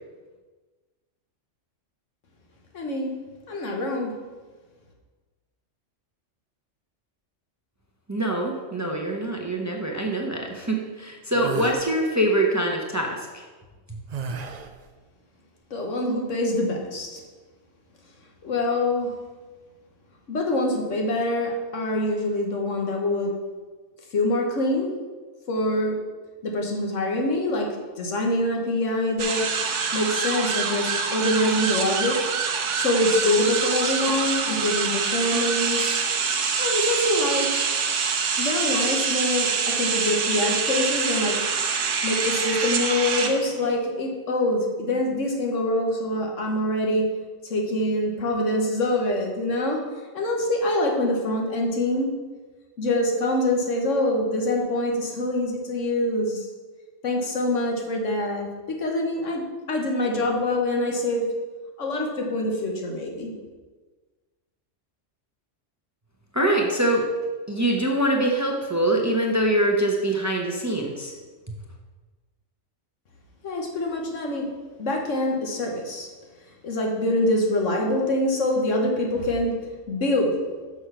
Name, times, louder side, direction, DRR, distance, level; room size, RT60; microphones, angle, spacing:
voice 1, 2.7-3.1 3.5-4.1 15.7-17.2 18.4-19.1 20.3-23.3 24.1-24.9 25.5-26.0 26.4-29.5 29.9-32.2 32.8-36.0 36.6-37.5 38.4-41.4 42.0-47.1 47.4-49.8 50.1-52.1 52.8-56.5 57.0-58.5 58.8-59.4 59.7-61.3 61.8-63.3 73.4-74.5 74.8-76.1 76.6-79.6 79.9-80.3, left 1 dB, 85° left, 1 dB, 1.6 m, -25 dB
voice 2, 8.1-13.4 13.9-14.0 66.3-67.1 67.5-71.1, right 1 dB, 15° right, 1 dB, 0.7 m, -24 dB
sound 1, 11.3-11.8 14.1-14.8, right 5 dB, 55° right, 0.4 m, -32 dB
sound 2, 29.2-43.7, right 5 dB, 75° right, 1.1 m, -25 dB
6.4 x 6.0 x 5.6 m, 1.3 s
omnidirectional pair, 1.3 m